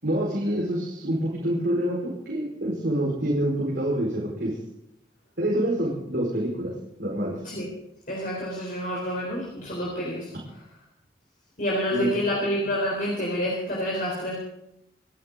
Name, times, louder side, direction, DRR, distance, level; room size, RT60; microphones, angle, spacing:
voice 1, 0.0-4.6 5.4-7.4 11.9-12.1, right 1 dB, 75° right, -5 dB, 4.8 m, -27 dB
voice 2, 8.1-10.3 11.6-14.3, equal, 50° left, -3 dB, 4.0 m, -28 dB
27.5 x 11.0 x 3.9 m, 0.84 s
head